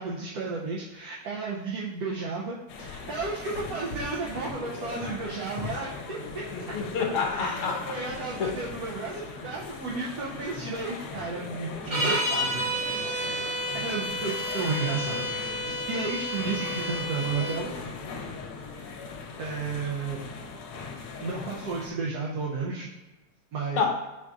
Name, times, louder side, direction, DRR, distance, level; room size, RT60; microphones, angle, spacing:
voice 1, 0.0-6.4 7.3-7.6 7.9-13.4 13.7-17.8 18.7-19.0 19.4-20.2 21.2-22.9 23.5-23.9, right 4 dB, 75° right, -5 dB, 1.2 m, -33 dB
sound 1, 2.7-21.9, left 4 dB, 90° left, 1.2 m, -39 dB
voice 2, 6.5-8.0 8.4-8.6 13.1-13.3 23.8-23.9, left 5 dB, 60° left, 2 dB, 1.0 m, -28 dB
sound 2, 11.9-17.6, equal, 60° right, 0.3 m, -30 dB
4.9 x 2.4 x 3.8 m, 1.1 s
omnidirectional pair, 1.7 m